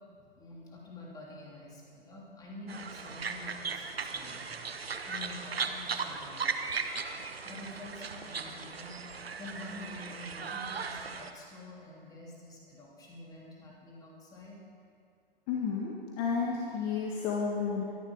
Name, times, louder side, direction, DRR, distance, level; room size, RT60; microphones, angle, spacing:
voice 1, 0.4-4.5 5.1-6.5 7.4-9.0 9.3-14.6, left 2 dB, 10° left, -3 dB, 3.0 m, -47 dB
sound 1, 2.7-11.3, right 5 dB, 75° right, 1.2 m, -37 dB
voice 2, 15.5-17.8, left 5 dB, 30° left, -3 dB, 1.8 m, -31 dB
24.0 x 11.0 x 4.9 m, 2.3 s
figure-of-eight pair, 125°, 30 cm